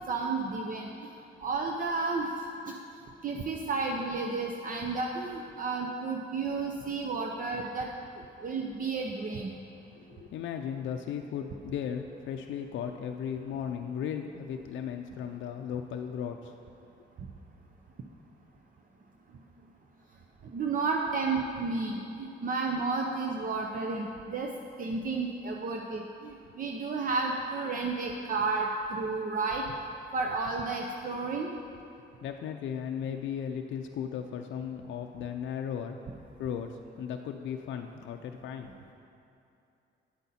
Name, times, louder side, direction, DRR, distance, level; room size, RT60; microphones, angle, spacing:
voice 1, 0.1-1.1 1.4-2.7 3.2-7.9 8.4-9.5 20.5-24.5 24.8-29.6 30.1-31.6, right 4 dB, 45° right, 1 dB, 0.7 m, -32 dB
voice 2, 10.0-16.5 32.2-36.0 36.4-38.7, left 8 dB, 70° left, 4 dB, 0.5 m, -36 dB
9.7 x 7.9 x 4.2 m, 2.7 s
cardioid pair, 90°, 20 cm